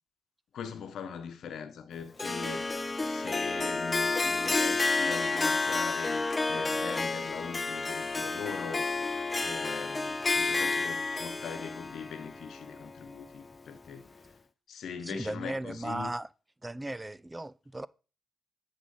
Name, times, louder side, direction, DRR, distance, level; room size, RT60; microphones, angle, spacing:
voice 1, 0.5-2.7 3.0-14.1 14.7-16.1, left 7 dB, 75° left, 1.0 m, -41 dB
Harp, 2.2-13.4, left 3 dB, 30° left, 0.6 m, -30 dB
voice 2, 15.0-16.3 16.6-17.9, right 2 dB, 20° right, 0.3 m, -36 dB
8.5 x 3.8 x 5.5 m
supercardioid pair, 50°, 0 cm